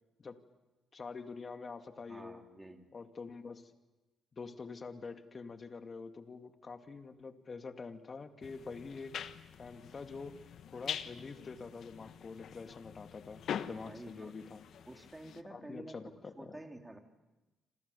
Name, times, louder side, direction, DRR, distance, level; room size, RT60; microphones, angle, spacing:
voice 1, 0.9-2.4 2.9-3.7 4.4-9.2 9.6-10.4 10.7-14.6 15.5-16.6, left 4 dB, 35° left, 8 dB, 2.3 m, -46 dB
voice 2, 2.1-2.9 13.8-14.4 14.9-17.0, right 1 dB, 10° right, 4 dB, 3.5 m, -50 dB
sound 1, 8.4-15.4, left 9 dB, 65° left, 1.3 m, -44 dB
28.5 x 27.0 x 7.1 m, 1.1 s
cardioid pair, 90°, 0 cm